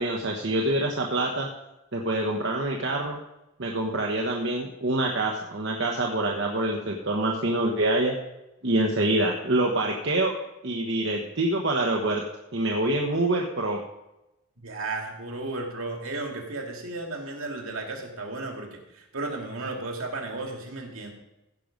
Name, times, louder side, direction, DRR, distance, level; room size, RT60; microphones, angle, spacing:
voice 1, 0.0-1.5 1.9-3.2 3.6-8.1 8.6-10.4 10.6-12.2 12.5-13.8, right 1 dB, 55° right, 0 dB, 1.1 m, -26 dB
voice 2, 14.6-21.1, right 2 dB, 70° right, 1 dB, 2.4 m, -34 dB
16.0 x 6.6 x 5.2 m, 0.94 s
head